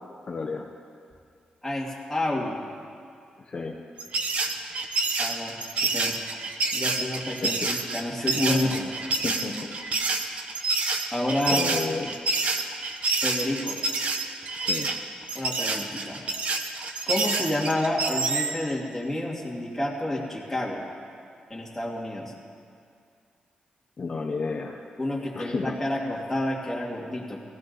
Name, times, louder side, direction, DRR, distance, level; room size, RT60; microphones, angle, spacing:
voice 1, 0.3-0.7 3.5-3.8 6.0-6.1 7.4-7.7 8.7-8.9 9.2-9.8 11.5-12.1 14.6-14.9 24.0-24.8 25.3-25.8, left 4 dB, 40° left, 0 dB, 0.9 m, -32 dB
voice 2, 1.6-2.6 5.2-6.2 6.7-8.9 11.1-11.6 13.1-13.8 15.3-16.2 17.1-20.8 21.5-22.3 25.0-27.4, left 1 dB, 10° left, -3 dB, 2.3 m, -29 dB
sound 1, 4.0-18.6, right 3 dB, 50° right, 1.0 m, -28 dB
19.0 x 16.0 x 4.1 m, 2.3 s
wide cardioid pair, 135°, 3 cm